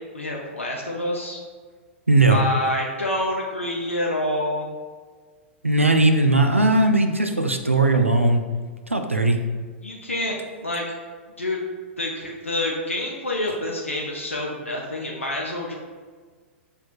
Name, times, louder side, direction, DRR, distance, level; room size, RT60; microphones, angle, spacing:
voice 1, 0.1-1.4 2.3-4.7 9.8-10.8 11.4-11.6 12.0-15.7, left 1 dB, 85° left, -2 dB, 0.6 m, -27 dB
voice 2, 2.1-2.4 5.6-8.4 8.9-9.4, right 2 dB, 85° right, 6 dB, 0.4 m, -18 dB
6.1 x 3.3 x 2.4 m, 1.5 s
figure-of-eight pair, 100°, 7 cm